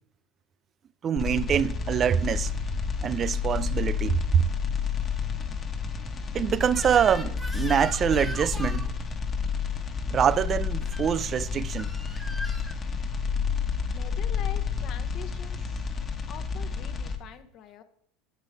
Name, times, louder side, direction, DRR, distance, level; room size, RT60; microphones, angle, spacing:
voice 1, 1.0-2.5 3.0-4.4 6.3-8.9 10.1-11.9, right 8 dB, 35° right, 0.3 m, -25 dB
sound 1, 1.2-17.2, left 6 dB, 30° left, 1.1 m, -30 dB
Crying sobbing / Screech, 6.7-8.9 10.8-11.1 11.8-12.8, equal, ahead, 1.0 m, -39 dB
voice 2, 13.9-15.8 16.3-17.8, left 9 dB, 50° left, 0.8 m, -44 dB
7.8 x 4.5 x 4.8 m
hypercardioid pair, 85°, 0 cm